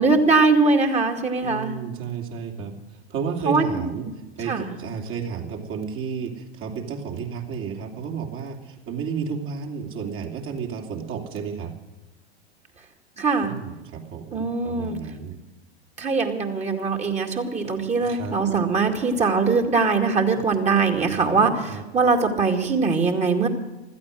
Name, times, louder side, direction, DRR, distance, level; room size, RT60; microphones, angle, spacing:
voice 1, 0.0-1.8 3.5-3.6 4.0-4.1 4.5-4.7 13.2-13.5 14.3-15.0 16.0-23.5, right 4 dB, 20° right, 4 dB, 2.2 m, -21 dB
voice 2, 1.4-4.0 4.4-11.7 13.4-15.4 18.0-18.4 21.3-21.8, right 6 dB, 40° right, 2 dB, 3.0 m, -32 dB
16.0 x 13.5 x 6.3 m, 1.1 s
figure-of-eight pair, 95°, 32 cm